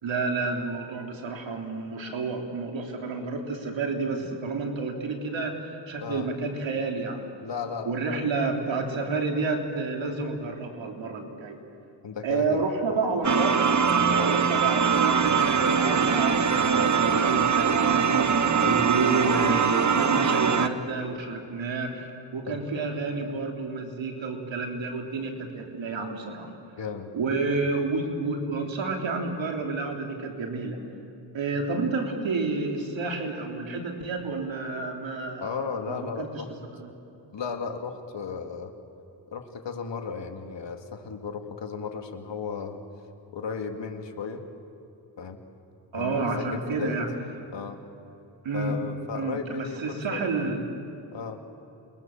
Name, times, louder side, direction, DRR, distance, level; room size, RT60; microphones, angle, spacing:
voice 1, 0.0-7.3 7.8-11.6 12.2-13.6 14.2-26.5 27.1-30.8 31.3-35.5 35.9-36.3 36.7-36.9 45.9-47.1 48.4-48.8 49.1-50.6, right 3 dB, 80° right, 2 dB, 3.5 m, -30 dB
voice 2, 7.4-8.3 12.0-12.7 14.1-14.3 18.6-18.8 22.5-22.6 26.8-27.1 35.4-36.5 37.3-38.7 39.3-42.8 43.3-44.4 45.2-45.4 45.9-47.0 47.5-47.8 48.5-50.5 51.1-51.4, left 5 dB, 70° left, 4 dB, 2.6 m, -35 dB
sound 1, 13.2-20.7, right 6 dB, 40° right, 1.3 m, -22 dB
28.5 x 22.0 x 7.4 m, 2.9 s
cardioid pair, 65°, 45 cm